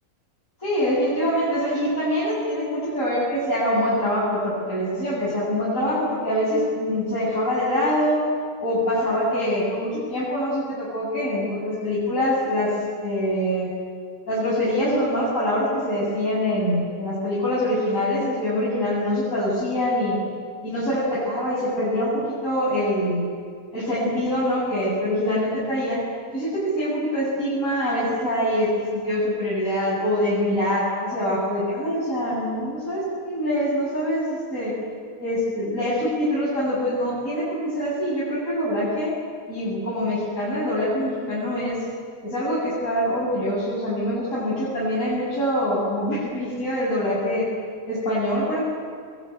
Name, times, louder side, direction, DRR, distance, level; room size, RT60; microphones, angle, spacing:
voice 1, 0.6-8.2 8.6-12.7 13.0-13.7 14.3-20.2 20.6-23.3 23.7-26.0 26.3-34.8 35.2-39.1 39.5-41.8 42.2-47.5 47.8-48.6, equal, 65° left, -9 dB, 8.2 m, -24 dB
27.0 x 22.0 x 9.1 m, 2.1 s
omnidirectional pair, 1.5 m